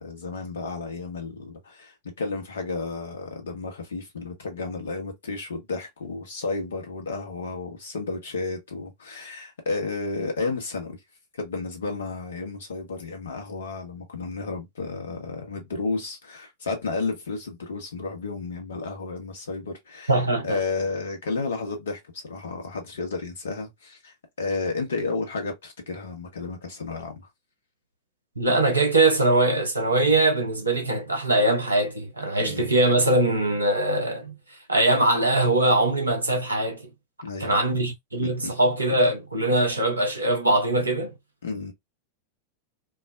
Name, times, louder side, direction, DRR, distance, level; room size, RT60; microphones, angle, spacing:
voice 1, 0.0-11.0 11.4-20.1 20.4-27.3 32.4-32.7 37.2-37.6 38.4-38.5 41.4-41.7, left 3 dB, 65° left, 1.2 m, -32 dB
voice 2, 20.1-20.5 28.4-34.4 34.7-36.9 37.4-41.1, right 2 dB, 80° right, 0.9 m, -22 dB
4.5 x 2.1 x 2.3 m
figure-of-eight pair, 90°, 0 cm